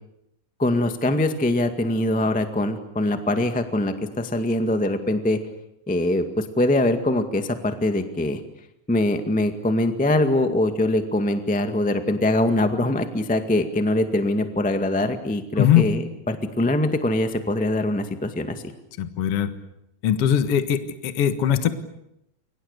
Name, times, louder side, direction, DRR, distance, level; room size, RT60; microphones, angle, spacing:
voice 1, 0.6-5.4 5.9-8.4 8.9-18.6, left 1 dB, 5° left, 7 dB, 0.7 m, -23 dB
voice 2, 19.0-19.5 20.0-21.7, left 10 dB, 50° left, 10 dB, 2.0 m, -20 dB
30.0 x 24.0 x 6.8 m, 0.81 s
omnidirectional pair, 4.2 m